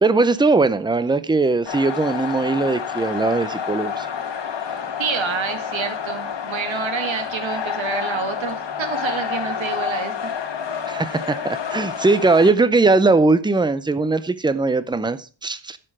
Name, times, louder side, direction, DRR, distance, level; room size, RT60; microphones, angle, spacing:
voice 1, 0.0-4.1 10.9-15.8, right 3 dB, 10° right, 0.5 m, -19 dB
sound 1, 1.7-12.5, left 7 dB, 65° left, 1.3 m, -29 dB
voice 2, 5.0-10.3, right 6 dB, 85° right, 1.8 m, -28 dB
11.5 x 6.8 x 4.8 m
wide cardioid pair, 165°, 45 cm